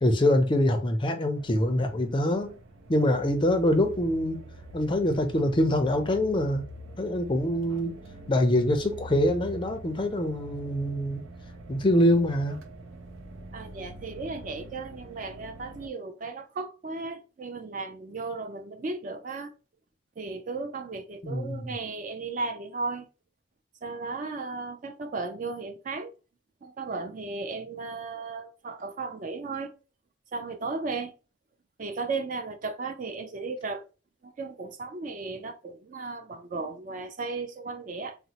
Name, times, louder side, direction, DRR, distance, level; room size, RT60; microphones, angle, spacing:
voice 1, 0.0-2.5 2.9-4.4 4.7-6.6 7.0-7.9 8.3-11.2 11.7-12.6 21.2-21.7, left 1 dB, 25° left, 0.4 m, -24 dB
sound 1, 1.3-15.9, right 1 dB, 90° right, 0.6 m, -45 dB
voice 2, 13.5-19.5 20.2-23.1 23.8-26.1 26.6-29.7 30.3-31.1 31.8-33.8 34.2-38.2, right 3 dB, 40° right, 0.4 m, -35 dB
3.9 x 2.0 x 2.8 m
head